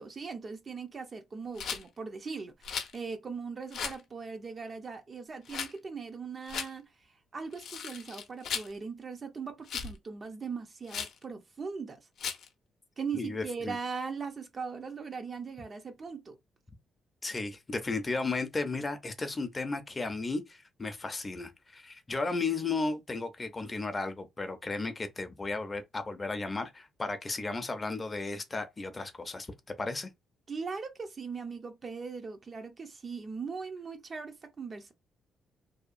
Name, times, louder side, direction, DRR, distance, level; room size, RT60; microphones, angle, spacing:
voice 1, 0.0-6.8 7.3-12.0 13.0-16.4 30.5-34.9, right 5 dB, 40° right, 0.6 m, -39 dB
Rattle, 1.6-1.8 2.6-3.0 3.7-4.0 5.5-5.7 6.5-6.7 7.5-8.7 9.7-10.0 10.9-11.2 12.2-12.5, left 7 dB, 65° left, 0.6 m, -36 dB
voice 2, 13.1-13.8 17.2-29.5 29.8-30.1, left 3 dB, 25° left, 0.6 m, -34 dB
2.7 x 2.2 x 2.5 m
cardioid pair, 90°, 0 cm